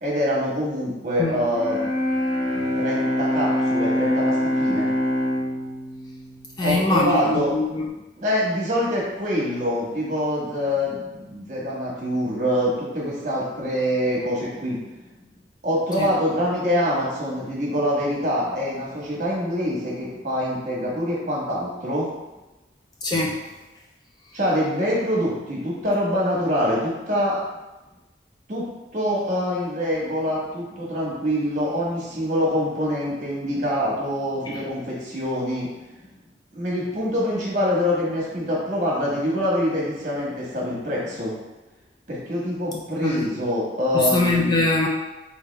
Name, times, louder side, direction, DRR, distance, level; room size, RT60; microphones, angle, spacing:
voice 1, 0.0-1.9 2.8-4.9 6.6-7.5 8.2-14.8 15.6-22.1 24.3-27.4 28.5-28.6 28.9-35.7 36.5-41.3 42.1-44.6, equal, 45° right, -5 dB, 1.3 m, -25 dB
Bowed string instrument, 1.5-7.5, left 1 dB, 70° left, 1.0 m, -25 dB
voice 2, 6.6-7.9 16.0-16.1 23.0-23.4 34.4-34.6 43.0-43.3 43.9-44.9, left 2 dB, 20° left, -2 dB, 0.4 m, -23 dB
3.7 x 3.5 x 3.3 m, 1.0 s
head